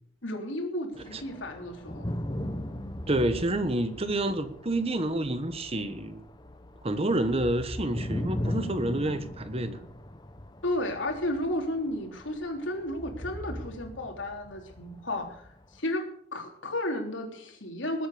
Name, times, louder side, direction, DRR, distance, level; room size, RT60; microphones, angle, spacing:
voice 1, 0.2-2.1 10.6-16.0 16.3-18.1, left 1 dB, 85° left, 3.5 m, -33 dB
sound 1, 0.9-15.8, equal, 20° left, 1.0 m, -39 dB
voice 2, 3.1-6.2 6.8-9.8, right 1 dB, 30° right, 1.2 m, -28 dB
19.5 x 8.4 x 6.8 m
head